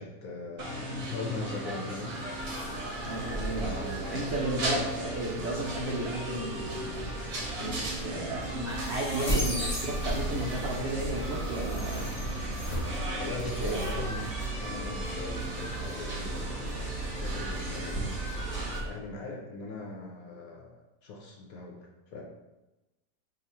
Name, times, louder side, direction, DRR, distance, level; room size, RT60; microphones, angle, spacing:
voice 1, 0.0-2.2 3.5-4.3 4.7-4.8 13.1-18.4 18.8-22.2, left 3 dB, 70° left, 0 dB, 0.9 m, -40 dB
sound 1, 0.6-18.8, right 1 dB, 60° right, 0.8 m, -37 dB
sound 2, 2.4-18.9, right 1 dB, 35° left, 0.5 m, -36 dB
voice 2, 3.0-3.7 4.1-7.1 7.5-12.3 13.6-13.8, right 1 dB, 85° right, -4 dB, 0.6 m, -34 dB
2.9 x 2.4 x 4.1 m, 1.0 s
omnidirectional pair, 1.8 m